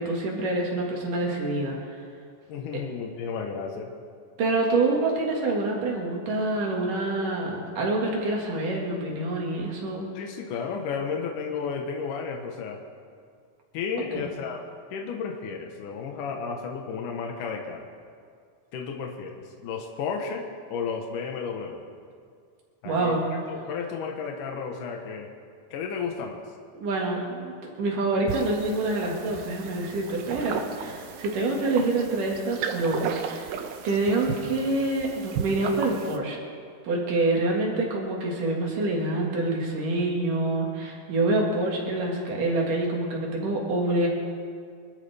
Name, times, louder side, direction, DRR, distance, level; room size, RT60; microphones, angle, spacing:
voice 1, 0.0-1.8 4.4-10.1 14.1-14.2 22.8-23.3 26.7-27.5 27.8-33.5 33.8-36.4 36.8-44.1, right 2 dB, 70° right, -1 dB, 3.5 m, -26 dB
voice 2, 2.5-3.9 10.1-12.8 13.7-14.6 14.9-17.8 18.7-20.4 20.7-21.8 22.8-23.2 23.5-25.3 25.7-26.4, left 5 dB, 70° left, 1 dB, 2.7 m, -33 dB
sound 1, 28.3-36.2, right 7 dB, 85° right, 2.6 m, -35 dB
25.0 x 13.0 x 3.5 m, 2.1 s
omnidirectional pair, 3.9 m